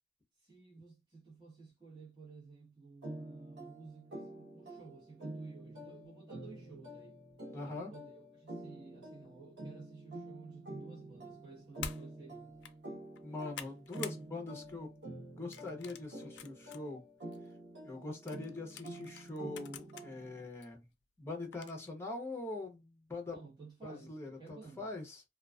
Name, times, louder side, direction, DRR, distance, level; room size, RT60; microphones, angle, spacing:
voice 1, 0.4-7.2 7.6-12.6 23.3-24.9, right 4 dB, 25° right, 1.1 m, -54 dB
sound 1, 3.0-20.5, right 1 dB, 80° right, 0.9 m, -48 dB
voice 2, 7.5-7.9 13.2-14.9 15.4-17.0 17.8-20.9 21.2-23.4 23.8-25.2, left 2 dB, 15° left, 0.7 m, -43 dB
sound 2, 11.8-12.0 12.5-12.7 13.2-14.2 14.6-14.9 15.5-16.8 17.3-17.4 18.3-20.1 20.6-20.7 21.5-21.9, left 8 dB, 85° left, 0.4 m, -47 dB
2.3 x 2.3 x 2.3 m
head